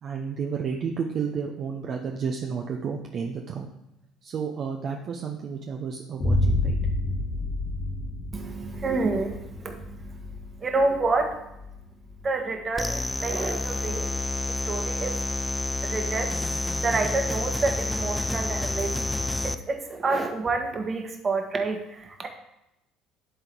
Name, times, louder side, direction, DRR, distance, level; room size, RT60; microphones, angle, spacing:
voice 1, 0.0-3.7 4.2-6.8, right 6 dB, 50° right, 2 dB, 0.7 m, -31 dB
Boom, 6.2-14.0, left 2 dB, 45° left, 1.8 m, -30 dB
voice 2, 8.3-18.9 19.4-22.3, right 3 dB, 35° right, 4 dB, 1.4 m, -29 dB
sound 1, 12.8-19.6, left 2 dB, 10° left, 0.5 m, -29 dB
11.5 x 3.8 x 4.6 m, 0.87 s
hypercardioid pair, 65°, 0 cm